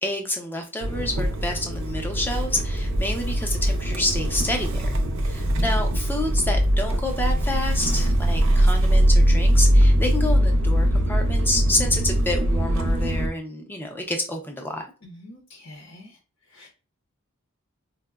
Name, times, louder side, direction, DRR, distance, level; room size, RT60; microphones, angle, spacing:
voice 1, 0.0-4.9 5.2-14.9, left 1 dB, 10° left, 3 dB, 0.5 m, -28 dB
Motor vehicle (road) / Engine starting, 0.8-13.3, equal, 65° right, 0.5 m, -21 dB
voice 2, 5.3-5.6 15.0-16.2 16.5-16.7, left 1 dB, 75° left, 0 dB, 0.7 m, -45 dB
4.3 x 2.0 x 2.3 m, 0.34 s
head